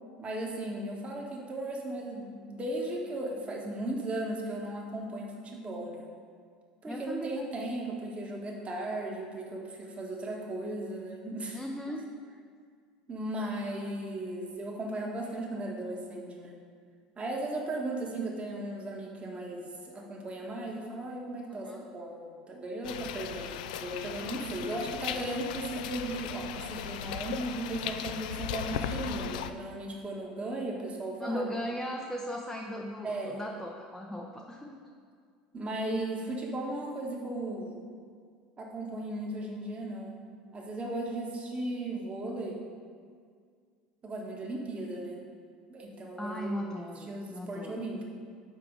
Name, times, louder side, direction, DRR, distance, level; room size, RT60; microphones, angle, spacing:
voice 1, 0.2-6.1 6.8-11.6 13.1-16.5 17.2-31.5 33.0-33.4 35.5-37.8 38.6-40.2 40.5-42.6 44.0-45.2 45.7-46.6 47.1-48.0, right 1 dB, 25° right, -1 dB, 1.5 m, -36 dB
voice 2, 6.9-7.4 11.5-12.0 21.5-21.9 31.2-34.8 46.2-47.8, equal, 5° left, 0 dB, 0.7 m, -37 dB
sound 1, 22.8-29.5, left 9 dB, 70° left, 0.4 m, -37 dB
6.0 x 4.8 x 6.3 m, 2.1 s
hypercardioid pair, 75°, 4 cm